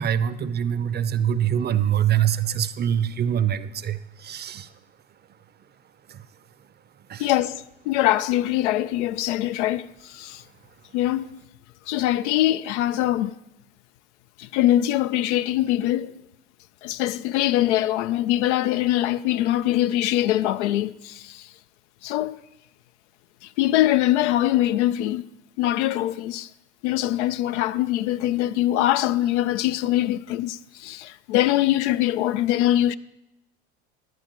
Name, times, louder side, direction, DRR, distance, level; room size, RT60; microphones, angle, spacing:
voice 1, 0.0-4.7 6.1-6.2 7.1-7.3, right 9 dB, 30° right, 0.6 m, -24 dB
voice 2, 7.2-10.4 10.9-11.4 11.9-13.3 14.4-16.1 16.8-21.5 22.0-22.4 23.4-25.2 25.6-26.5 26.8-33.0, left 14 dB, 75° left, 0.5 m, -23 dB
17.0 x 11.5 x 3.0 m
hypercardioid pair, 80°, 36 cm